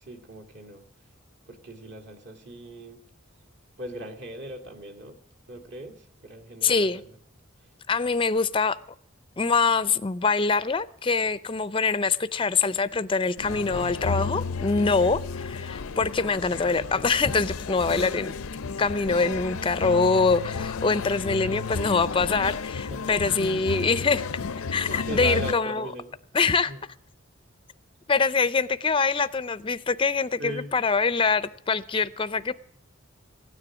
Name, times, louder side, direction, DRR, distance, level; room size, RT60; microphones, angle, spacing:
voice 1, 0.0-0.8 1.5-3.0 3.8-5.2 5.5-7.1 22.9-23.2 24.9-26.1 26.4-26.8 30.4-30.7, right 1 dB, 55° right, 2.2 m, -38 dB
voice 2, 6.6-7.0 7.9-8.8 9.4-18.3 18.8-24.4 24.7-25.9 26.3-26.7 28.1-32.5, left 4 dB, 25° left, 0.5 m, -24 dB
sound 1, 13.4-25.5, left 4 dB, 90° left, 0.6 m, -32 dB
16.0 x 9.8 x 6.1 m
head